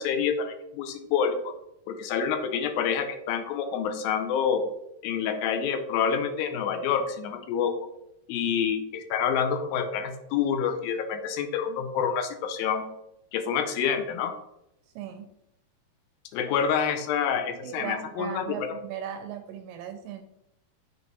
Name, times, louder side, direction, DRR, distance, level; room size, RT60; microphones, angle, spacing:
voice 1, 0.0-1.4 1.9-4.6 5.0-7.8 8.3-12.8 13.3-14.3 16.3-18.7, left 7 dB, 85° left, 7 dB, 2.5 m, -27 dB
voice 2, 15.0-15.3 17.6-20.2, right 9 dB, 80° right, 7 dB, 2.0 m, -37 dB
6.6 x 4.6 x 4.1 m, 0.81 s
omnidirectional pair, 4.3 m